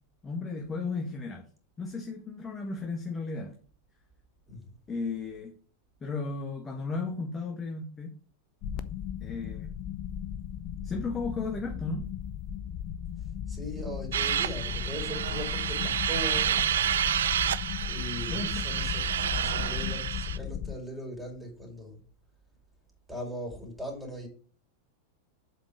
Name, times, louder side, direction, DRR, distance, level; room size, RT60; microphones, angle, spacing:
voice 1, 0.2-1.4 1.8-3.6 4.9-5.5 6.0-8.1 9.2-9.7 10.8-12.1 18.3-18.6, left 4 dB, 20° left, 1.3 m, -34 dB
voice 2, 4.5-4.8 13.5-16.7 17.8-22.0 23.1-24.3, equal, 5° right, 4.2 m, -40 dB
sound 1, 8.6-20.7, left 9 dB, 40° left, 0.7 m, -36 dB
sound 2, 14.1-20.4, right 10 dB, 65° right, 0.4 m, -29 dB
7.8 x 5.5 x 5.0 m
figure-of-eight pair, 90°, 0 cm